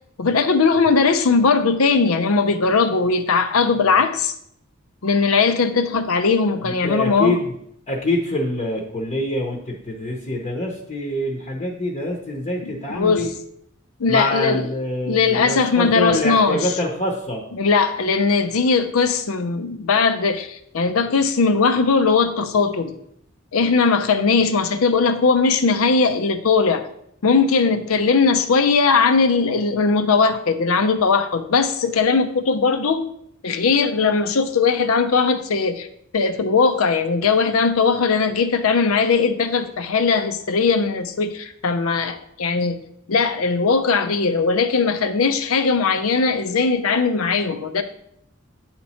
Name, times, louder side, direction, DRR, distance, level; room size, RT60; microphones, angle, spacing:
voice 1, 0.2-4.3 5.0-7.3 12.7-13.3 14.0-14.7 15.1-16.6 17.6-22.9 23.5-26.8 27.2-33.1 33.4-35.9 36.1-42.8 43.1-47.8, left 4 dB, 90° left, 9 dB, 0.6 m, -19 dB
voice 2, 6.6-7.5 7.9-13.3 14.1-17.4, left 1 dB, 35° left, -1 dB, 0.8 m, -25 dB
8.7 x 3.0 x 4.2 m, 0.72 s
head